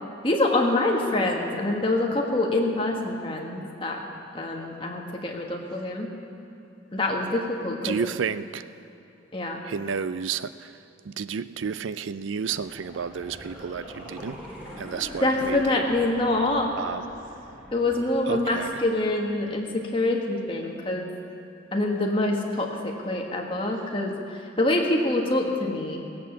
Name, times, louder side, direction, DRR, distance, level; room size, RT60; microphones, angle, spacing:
voice 1, 0.2-4.0 4.3-6.1 6.9-8.0 9.3-9.6 15.2-16.7 17.7-21.1 21.7-26.0, left 2 dB, 25° left, 0 dB, 1.5 m, -25 dB
voice 2, 7.8-8.6 9.6-10.7 11.0-14.4 14.8-15.6 16.8-17.0 18.3-18.7, right 6 dB, 75° right, 15 dB, 0.4 m, -31 dB
sound 1, 12.5-19.5 19.8-19.9, equal, 5° right, 3.8 m, -43 dB
17.5 x 8.6 x 7.1 m, 2.8 s
head